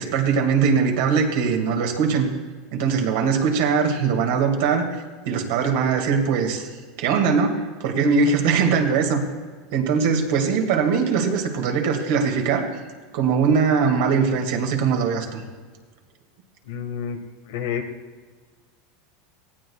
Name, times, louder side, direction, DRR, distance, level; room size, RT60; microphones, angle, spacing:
voice 1, 0.0-2.3 2.7-4.9 5.2-6.7 7.0-7.5 7.8-9.2 9.7-12.7 13.1-15.4, right 5 dB, 75° right, 3 dB, 2.1 m, -21 dB
voice 2, 16.6-17.2 17.4-17.8, left 8 dB, 80° left, 4 dB, 1.5 m, -29 dB
18.5 x 15.5 x 2.4 m, 1.5 s
supercardioid pair, 120°, 0 cm